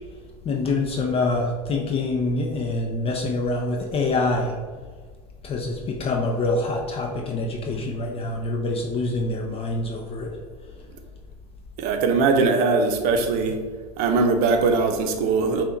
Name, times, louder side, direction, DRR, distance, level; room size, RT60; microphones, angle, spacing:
voice 1, 0.5-4.5 5.4-10.3, left 2 dB, 30° left, 1 dB, 0.6 m, -25 dB
voice 2, 11.8-13.6 14.0-15.6, right 4 dB, 55° right, 5 dB, 0.7 m, -21 dB
5.5 x 2.4 x 3.8 m, 1.5 s
hypercardioid pair, 90°, 19 cm